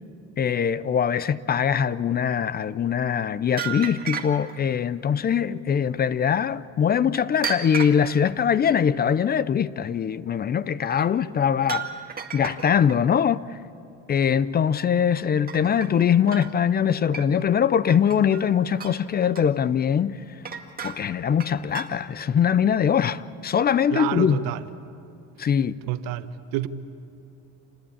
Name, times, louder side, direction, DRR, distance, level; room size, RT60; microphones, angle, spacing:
voice 1, 0.4-11.9 12.3-13.4 14.1-20.2 20.8-24.4 25.4-25.7, left 8 dB, 30° left, 0.5 m, -22 dB
sound 1, 3.6-4.7 7.1-8.2 10.9-11.1 11.6-13.0 15.0-15.2 15.5-16.6 17.1-17.6 17.9-18.5 18.8-19.5 20.5-21.1 21.4-21.9, right 7 dB, 25° right, 2.1 m, -34 dB
voice 2, 23.9-24.7 25.8-26.7, right 12 dB, 80° right, 1.3 m, -29 dB
28.0 x 19.5 x 8.7 m
cardioid pair, 115°, 33 cm